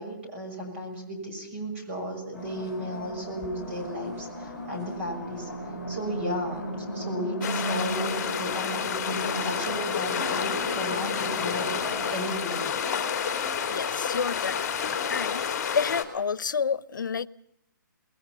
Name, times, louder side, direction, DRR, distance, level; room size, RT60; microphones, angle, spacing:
voice 1, 0.0-5.5 5.9-12.7, equal, 40° right, 6.4 m, -35 dB
sound 1, 2.3-12.2, right 1 dB, 10° right, 7.4 m, -36 dB
sound 2, 7.4-16.0, left 7 dB, 15° left, 2.8 m, -29 dB
voice 2, 13.7-14.6 15.1-15.5 15.7-17.3, left 6 dB, 75° left, 0.9 m, -29 dB
27.5 x 20.5 x 5.6 m
hypercardioid pair, 170°, 11 cm